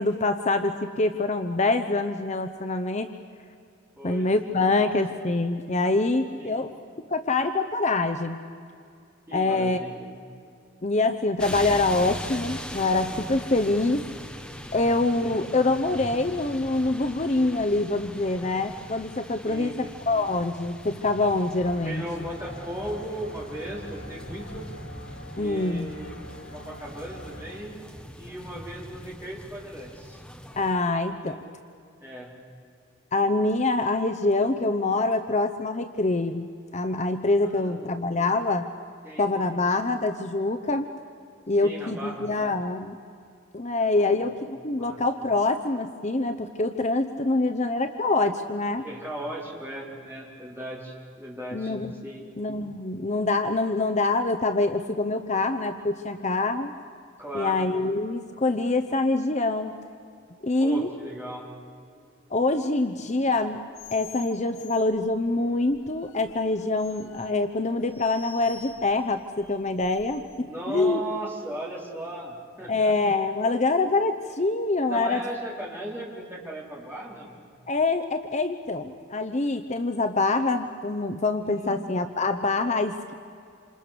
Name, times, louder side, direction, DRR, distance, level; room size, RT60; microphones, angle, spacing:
voice 1, 0.0-3.1 4.0-6.7 7.1-8.4 9.3-9.8 10.8-14.0 14.7-22.0 25.4-26.0 30.6-31.4 33.1-36.5 36.7-38.7 39.2-40.9 41.5-43.0 43.5-48.9 51.5-52.0 52.4-56.7 57.3-59.8 60.4-60.9 62.3-63.6 63.9-71.0 72.7-75.2 77.7-83.1, left 2 dB, 35° left, 7 dB, 0.8 m, -25 dB
voice 2, 4.0-4.3 4.7-4.9 6.3-6.6 9.3-10.1 15.2-15.4 19.4-19.8 21.8-24.7 25.4-26.2 26.5-27.8 28.2-30.2 31.2-31.4 32.0-32.3 37.4-38.3 39.0-39.3 41.6-42.3 44.0-44.3 44.8-45.0 48.8-51.7 52.0-52.2 57.2-57.6 60.6-61.5 70.4-72.9 74.9-77.4 81.4-81.8, right 1 dB, 10° right, -3 dB, 4.4 m, -37 dB
sound 1, 11.4-30.7, equal, 5° left, 1.0 m, -41 dB
sound 2, 21.5-27.6, equal, 60° left, 7.9 m, -44 dB
sound 3, 63.7-70.4, left 6 dB, 85° left, 1.7 m, -49 dB
27.5 x 27.5 x 6.9 m, 2.5 s
head